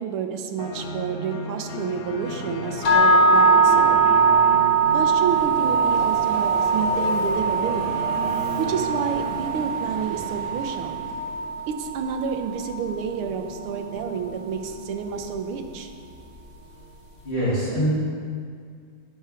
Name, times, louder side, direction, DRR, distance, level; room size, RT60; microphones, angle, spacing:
voice 1, 0.0-4.0 4.9-8.1 8.6-11.0 11.7-15.9, right 7 dB, 85° right, 5 dB, 1.6 m, -30 dB
sound 1, 0.6-16.9, left 2 dB, 65° left, 1.2 m, -36 dB
sound 2, 2.8-12.9, right 4 dB, 50° left, 1.4 m, -21 dB
Subway metro underground, 5.3-11.5, right 4 dB, 60° right, 1.3 m, -37 dB
voice 2, 17.2-17.9, equal, 30° left, -11 dB, 2.4 m, -23 dB
8.8 x 5.6 x 4.9 m, 2.1 s
omnidirectional pair, 2.3 m